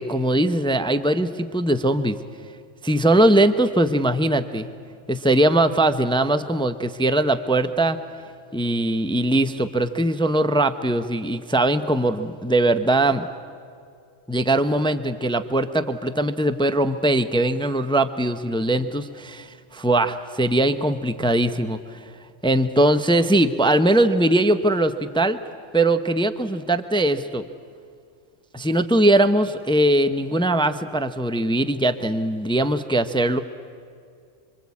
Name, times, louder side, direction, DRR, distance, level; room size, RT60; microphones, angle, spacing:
voice 1, 0.0-2.2 2.8-4.7 5.1-8.0 8.5-13.3 14.3-22.0 22.4-25.4 25.7-27.5 28.5-33.4, right 1 dB, 5° left, 10 dB, 0.7 m, -21 dB
26.0 x 24.5 x 8.5 m, 2.3 s
omnidirectional pair, 1.3 m